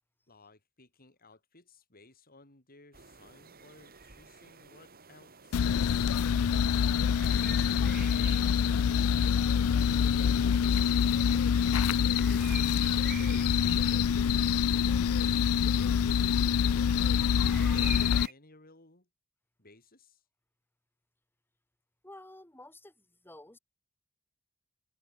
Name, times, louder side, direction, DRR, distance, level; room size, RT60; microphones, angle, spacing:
voice 1, 0.3-6.2 7.8-8.8 9.8-14.3 15.6-19.1 19.6-20.2, left 3 dB, 45° left, 7.3 m, -58 dB
sound 1, 2.9-18.3, right 6 dB, 45° right, 5.7 m, -50 dB
sound 2, 5.5-18.3, left 7 dB, 80° left, 0.4 m, -26 dB
voice 2, 22.0-23.6, left 1 dB, 10° left, 5.7 m, -51 dB
head